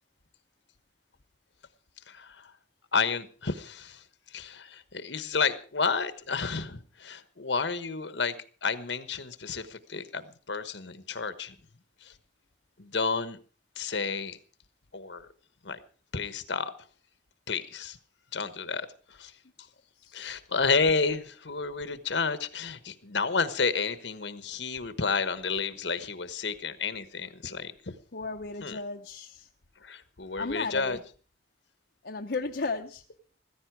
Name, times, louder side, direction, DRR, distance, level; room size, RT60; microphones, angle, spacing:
voice 1, 2.9-4.0 4.3-8.3 8.6-10.2 10.5-11.5 12.8-13.4 13.8-14.4 14.9-15.3 15.6-15.8 16.1-16.7 17.5-18.0 18.3-18.9 19.2-19.3 20.1-27.9 28.6-28.8 29.8-31.0, left 4 dB, 75° left, 12 dB, 1.2 m, -30 dB
voice 2, 20.0-20.3 28.1-29.5 30.4-31.0 32.0-33.0, left 3 dB, 60° left, 2 dB, 0.8 m, -34 dB
15.5 x 14.0 x 4.7 m, 0.39 s
head